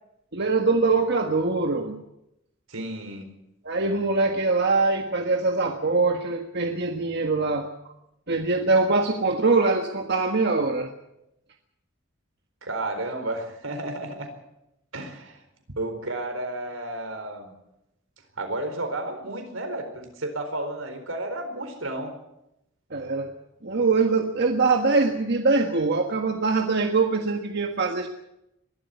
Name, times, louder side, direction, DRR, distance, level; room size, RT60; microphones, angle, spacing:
voice 1, 0.3-2.0 3.6-7.7 8.3-10.9 22.9-23.3 23.6-28.1, right 3 dB, 60° right, 4 dB, 1.6 m, -23 dB
voice 2, 2.7-3.3 12.6-14.3 14.9-15.4 15.8-17.5 18.4-22.2, right 1 dB, 85° right, 6 dB, 4.3 m, -32 dB
22.0 x 12.5 x 9.6 m, 0.86 s
head